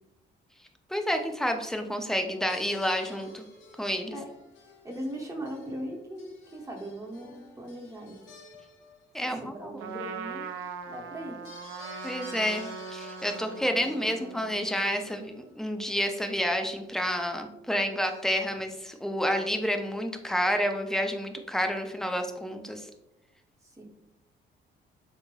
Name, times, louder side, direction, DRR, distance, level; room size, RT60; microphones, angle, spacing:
voice 1, 0.9-3.4 3.8-4.2 9.1-9.4 12.0-22.9, equal, ahead, 5 dB, 0.4 m, -29 dB
sound 1, 2.5-9.5 11.4-15.6 17.9-18.6 18.9-19.0, left 3 dB, 80° left, 0.9 m, -51 dB
voice 2, 4.8-8.2 9.2-10.5 10.9-11.4 23.6-23.8, right 1 dB, 15° right, 0 dB, 0.8 m, -39 dB
Trumpet, 9.8-15.0, right 5 dB, 90° right, 0.4 m, -40 dB
3.7 x 3.1 x 2.2 m, 0.88 s
cardioid pair, 90°, 20 cm